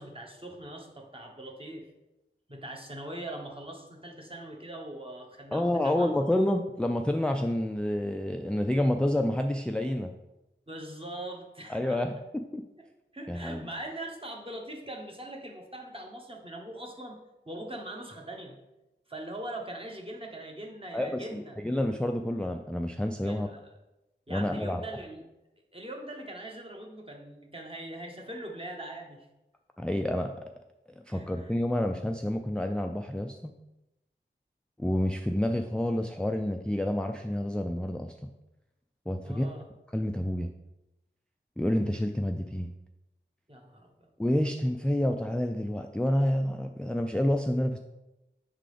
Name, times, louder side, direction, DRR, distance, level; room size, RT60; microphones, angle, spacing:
voice 1, 0.0-1.9 2.5-6.1 10.7-12.0 13.1-17.2 17.4-18.6 19.1-21.5 23.2-23.7 24.3-25.2 25.7-29.3 31.1-31.5 39.2-39.6 43.5-44.1, right 1 dB, 25° right, 0 dB, 1.2 m, -41 dB
voice 2, 5.5-10.1 11.7-12.6 13.3-13.7 20.9-23.5 24.3-24.8 29.8-30.3 31.1-33.5 34.8-38.1 39.1-39.4 39.9-40.5 41.6-42.7 44.2-47.8, left 1 dB, 5° left, 4 dB, 0.3 m, -28 dB
6.6 x 3.8 x 5.0 m, 0.96 s
wide cardioid pair, 60°, 20 cm